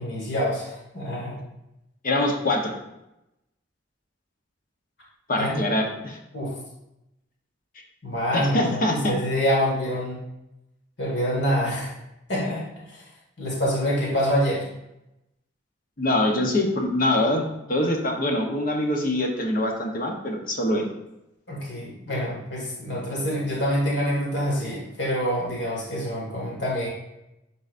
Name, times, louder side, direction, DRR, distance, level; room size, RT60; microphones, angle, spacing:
voice 1, 0.0-1.4 5.4-5.6 6.3-6.6 8.0-10.2 11.0-11.9 12.3-13.1 13.4-14.7 21.5-26.9, equal, 65° left, -4 dB, 2.0 m, -26 dB
voice 2, 2.0-2.7 5.3-6.2 8.3-9.1 16.0-17.4 17.7-20.9, left 1 dB, 50° left, 1 dB, 1.0 m, -24 dB
10.5 x 4.0 x 2.6 m, 0.90 s
head